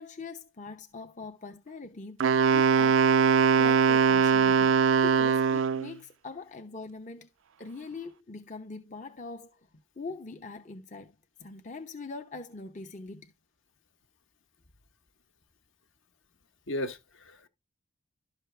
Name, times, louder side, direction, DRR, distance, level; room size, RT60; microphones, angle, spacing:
voice 1, 0.0-3.0 3.3-7.3 7.6-9.6 10.0-11.1 11.4-13.3, left 3 dB, 35° left, 0.8 m, -42 dB
Wind instrument woodwind instrument, 2.2-5.9, right 6 dB, 70° right, 0.4 m, -22 dB
voice 2, 16.7-17.5, left 1 dB, 65° left, 1.4 m, -36 dB
12.0 x 6.3 x 3.3 m
head